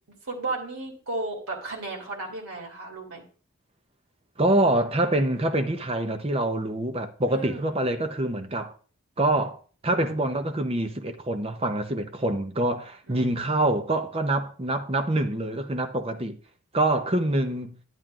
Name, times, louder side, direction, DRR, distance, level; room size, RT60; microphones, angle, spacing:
voice 1, 0.3-3.2 7.3-7.8 13.1-13.6, right 2 dB, 80° right, 2.9 m, -34 dB
voice 2, 4.4-8.7 9.2-16.4 16.7-17.8, right 1 dB, 25° right, 0.7 m, -25 dB
10.5 x 9.0 x 2.4 m
head